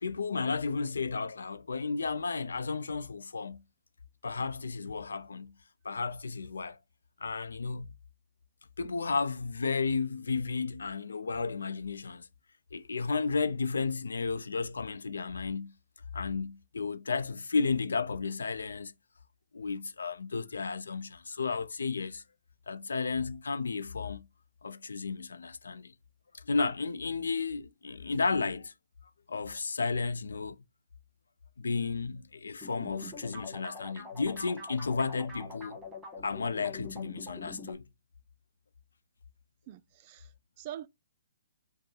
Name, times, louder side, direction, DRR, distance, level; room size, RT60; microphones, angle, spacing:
voice 1, 0.0-3.6 4.2-5.5 5.8-6.8 7.2-7.9 8.8-12.3 12.7-15.7 16.1-18.9 19.5-22.2 22.7-24.2 24.6-25.9 26.3-28.7 29.3-30.6 31.6-35.8 36.2-37.8, left 4 dB, 90° left, 0.5 m, -33 dB
sound 1, 32.6-37.7, left 3 dB, 10° right, 1.4 m, -44 dB
voice 2, 39.7-40.9, right 12 dB, 35° right, 0.4 m, -44 dB
5.3 x 2.1 x 4.4 m
hypercardioid pair, 150°, 0 cm